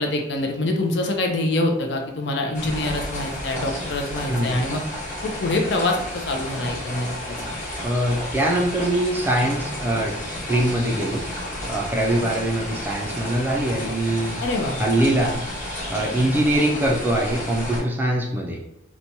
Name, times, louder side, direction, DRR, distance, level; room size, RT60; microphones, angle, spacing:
voice 1, 0.0-4.8 5.2-7.5 14.4-15.2 16.2-16.4, left 2 dB, 60° left, 2 dB, 0.4 m, -25 dB
sound 1, 2.5-17.8, left 1 dB, 40° left, 1.0 m, -32 dB
voice 2, 4.3-4.6 7.8-11.2 11.7-14.4 14.8-15.4 15.9-18.6, right 1 dB, 10° right, -1 dB, 0.3 m, -23 dB
2.9 x 2.2 x 2.6 m, 0.87 s
head